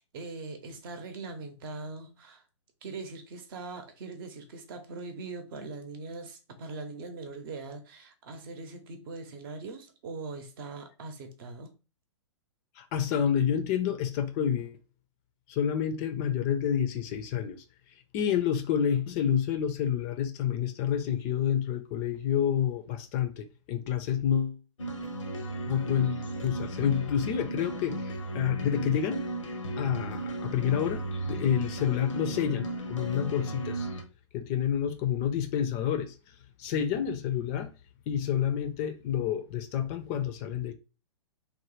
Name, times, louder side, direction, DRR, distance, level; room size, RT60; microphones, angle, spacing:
voice 1, 0.0-2.4 2.8-11.7, right 3 dB, 45° right, 0.7 m, -41 dB
voice 2, 12.8-14.8 15.5-17.6 18.1-24.6 25.7-29.2 29.8-33.9 34.3-36.1 36.6-37.7 38.1-40.7, left 9 dB, 30° left, 0.4 m, -29 dB
sound 1, 24.8-34.0, right 1 dB, 85° left, 0.7 m, -35 dB
3.1 x 2.1 x 3.1 m
figure-of-eight pair, 115°, 16 cm